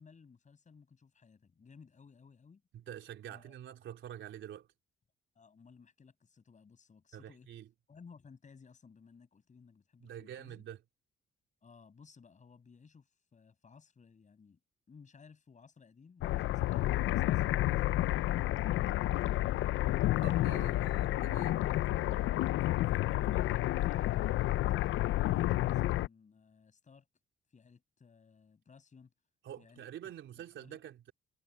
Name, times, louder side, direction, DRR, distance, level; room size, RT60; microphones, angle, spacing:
voice 1, 0.0-2.6 3.3-3.5 5.3-7.5 7.9-10.6 11.6-14.6 14.9-19.1 20.5-21.1 22.4-24.3 25.2-27.1 27.5-29.1 29.6-30.1 30.6-30.9, left 5 dB, 40° left, 6.2 m, -58 dB
voice 2, 2.7-4.7 7.1-7.7 10.0-10.8 20.2-21.6 29.4-31.1, right 10 dB, 75° right, 3.5 m, -47 dB
sound 1, 16.2-26.1, left 15 dB, 80° left, 0.5 m, -30 dB
cardioid pair, 90°, 20 cm